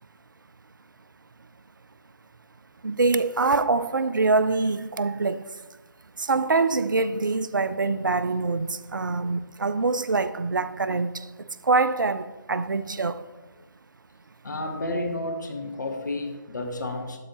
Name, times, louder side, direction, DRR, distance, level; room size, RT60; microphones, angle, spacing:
voice 1, 2.8-5.4 6.2-11.3 11.6-13.2, right 3 dB, 70° right, 0.5 m, -24 dB
voice 2, 14.4-17.2, left 1 dB, 65° left, 1.2 m, -31 dB
11.5 x 4.6 x 3.1 m
figure-of-eight pair, 150°, 11 cm